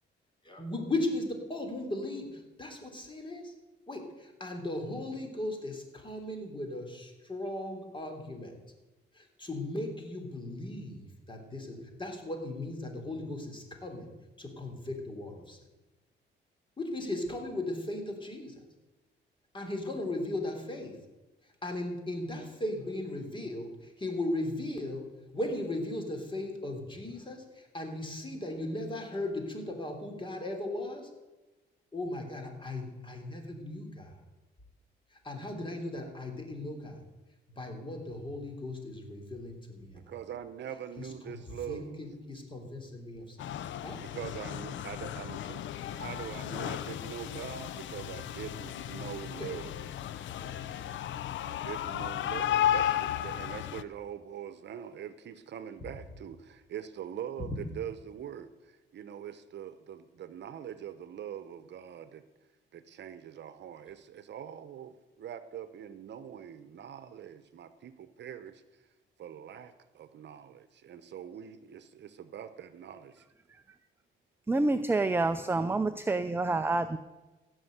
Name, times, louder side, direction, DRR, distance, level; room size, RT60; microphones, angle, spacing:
voice 1, 0.5-3.5 3.9-8.5 9.2-14.1 14.4-15.6 16.8-18.6 19.5-21.0 21.6-25.1 25.3-31.0 31.9-34.1 35.2-37.0 37.6-40.0 41.3-43.5 43.8-44.0 50.4-51.0, left 1 dB, 25° left, 4 dB, 3.4 m, -37 dB
voice 2, 39.9-42.0 44.0-45.6 45.9-49.9 51.4-62.2 62.7-68.6 69.2-73.2, right 9 dB, 60° right, 12 dB, 0.9 m, -43 dB
sound 1, 43.4-53.8, left 11 dB, 70° left, 0.6 m, -34 dB
voice 3, 74.5-77.0, right 2 dB, 10° right, 11 dB, 0.6 m, -28 dB
15.5 x 6.5 x 8.1 m, 1.1 s
cardioid pair, 90°, 20 cm